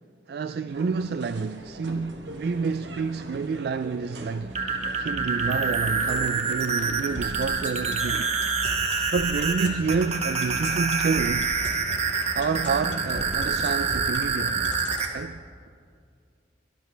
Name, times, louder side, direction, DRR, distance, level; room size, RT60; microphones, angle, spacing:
voice 1, 0.3-8.3 9.1-11.5 12.3-14.7 15.1-15.4, right 5 dB, 55° right, 0.3 m, -29 dB
sound 1, 0.7-7.4, right 1 dB, 75° right, 1.3 m, -43 dB
sound 2, 4.4-15.1, right 4 dB, 35° right, 1.2 m, -27 dB
sound 3, 7.1-15.1, left 2 dB, 85° left, 2.0 m, -38 dB
22.5 x 12.5 x 3.3 m
head